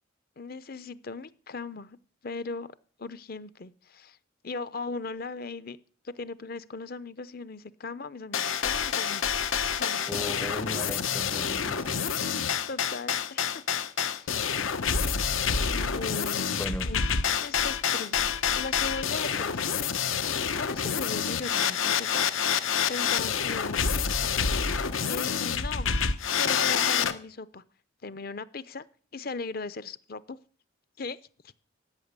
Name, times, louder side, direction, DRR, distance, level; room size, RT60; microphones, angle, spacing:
voice 1, 0.4-2.0 2.2-4.2 4.4-5.8 6.0-9.4 9.8-10.6 12.3-13.6 14.0-14.3 15.7-17.0 17.4-18.3 18.5-19.9 20.6-22.3 22.9-23.9 24.5-24.6 25.1-25.9 26.3-27.6 28.0-28.9 29.1-30.4 31.0-31.2, left 3 dB, 50° left, 0.7 m, -38 dB
sound 1, 8.3-27.1, left 7 dB, 80° left, 1.0 m, -28 dB
voice 2, 10.1-12.1 16.5-16.9, left 1 dB, 10° left, 0.5 m, -37 dB
14.0 x 6.6 x 9.6 m
head